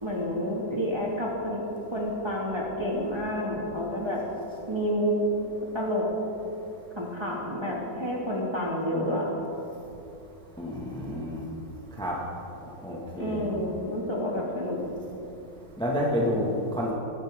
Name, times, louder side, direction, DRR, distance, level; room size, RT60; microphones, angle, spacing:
voice 1, 0.0-1.6 1.9-4.2 4.7-5.2 5.7-6.1 7.0-9.3 13.2-14.8, equal, 15° right, -4 dB, 2.1 m, -29 dB
voice 2, 10.6-11.5 12.0-12.2 12.8-13.5 15.8-16.9, equal, 5° left, -4 dB, 1.8 m, -29 dB
22.0 x 11.5 x 3.8 m, 2.8 s
omnidirectional pair, 2.0 m